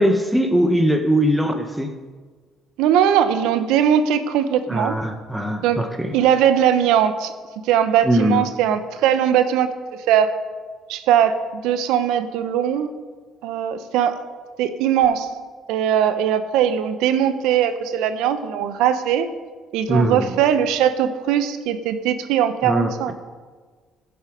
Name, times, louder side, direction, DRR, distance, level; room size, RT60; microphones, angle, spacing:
voice 1, 0.0-2.0 4.7-6.2 8.0-8.5 19.9-20.3 22.6-23.1, equal, 5° right, 4 dB, 1.1 m, -20 dB
voice 2, 2.8-4.9 5.6-5.8 6.1-7.3 7.6-9.7 10.1-10.4 10.9-12.9 13.4-14.2 14.6-15.3 15.7-19.3 19.7-23.1, right 9 dB, 85° right, 11 dB, 0.7 m, -20 dB
15.5 x 7.1 x 5.1 m, 1.5 s
supercardioid pair, 80°, 0 cm